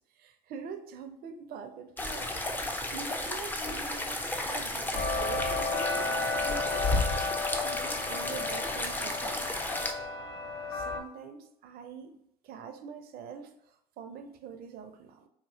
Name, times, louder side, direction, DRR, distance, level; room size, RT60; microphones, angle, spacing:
voice 1, 0.2-2.3 2.7-4.3 4.5-6.2 6.4-7.0 7.4-9.8 10.7-13.5 14.0-15.3, right 6 dB, 50° right, 0.5 m, -45 dB
sound 1, 2.0-9.9, left 1 dB, 10° left, 0.4 m, -34 dB
sound 2, 4.9-11.0, left 3 dB, 55° left, 0.6 m, -32 dB
2.8 x 2.7 x 2.7 m
hypercardioid pair, 70°, 20 cm